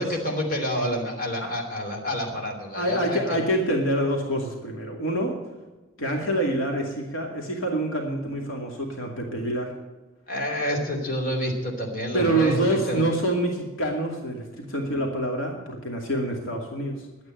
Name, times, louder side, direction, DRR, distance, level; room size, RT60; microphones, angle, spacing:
voice 1, 0.0-3.4 10.3-13.0, equal, 45° left, 1 dB, 3.2 m, -28 dB
voice 2, 2.7-5.3 6.0-9.7 12.1-17.1, right 1 dB, 80° left, 0 dB, 2.4 m, -26 dB
11.5 x 9.4 x 8.9 m, 1.2 s
head